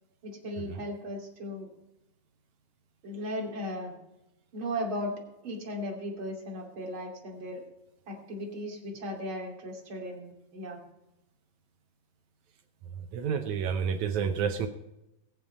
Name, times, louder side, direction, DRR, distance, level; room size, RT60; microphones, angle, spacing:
voice 1, 0.2-1.7 3.0-3.9 4.5-7.6 8.1-10.8, equal, 40° right, 0 dB, 3.2 m, -36 dB
voice 2, 13.1-14.7, right 7 dB, 70° right, 7 dB, 2.0 m, -29 dB
21.0 x 7.7 x 5.4 m, 0.89 s
omnidirectional pair, 3.9 m